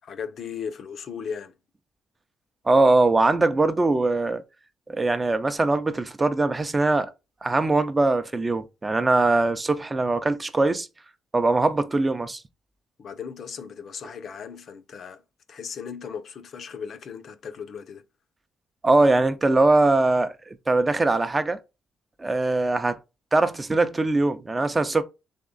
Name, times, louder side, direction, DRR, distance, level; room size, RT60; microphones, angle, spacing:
voice 1, 0.0-1.5 13.0-15.2 15.5-18.0, left 6 dB, 60° left, 0.6 m, -37 dB
voice 2, 2.7-4.4 4.9-7.1 7.4-10.9 11.3-12.4 18.8-21.6 22.2-23.0 23.3-25.0, right 2 dB, 25° right, 0.5 m, -21 dB
3.6 x 3.1 x 3.8 m
cardioid pair, 90°, 0 cm